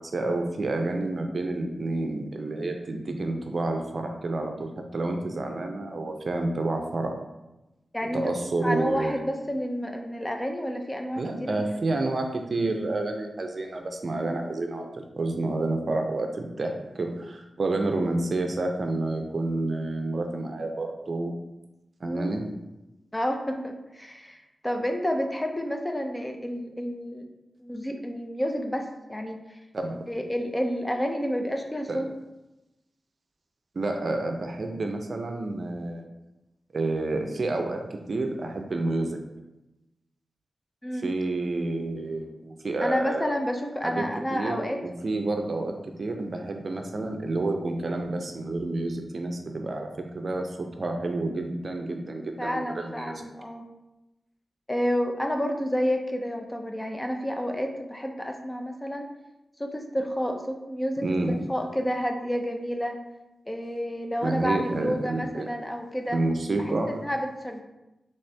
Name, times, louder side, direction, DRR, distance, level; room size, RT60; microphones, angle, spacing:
voice 1, 0.0-7.2 8.0-9.2 11.2-21.3 22.0-22.6 29.7-30.1 31.9-32.1 33.7-36.1 36.7-39.2 40.9-43.3 43.8-53.3 61.0-61.4 64.2-65.5 66.1-67.0, right 2 dB, 55° right, 4 dB, 0.5 m, -29 dB
voice 2, 7.9-8.3 8.6-11.5 22.0-22.3 23.1-27.3 27.6-29.4 30.1-32.1 40.8-41.1 42.8-44.8 52.4-53.7 54.7-59.0 59.6-63.0 63.5-66.2 66.6-67.6, equal, 15° left, 3 dB, 0.5 m, -30 dB
4.3 x 3.4 x 3.3 m, 0.98 s
wide cardioid pair, 90°, 0 cm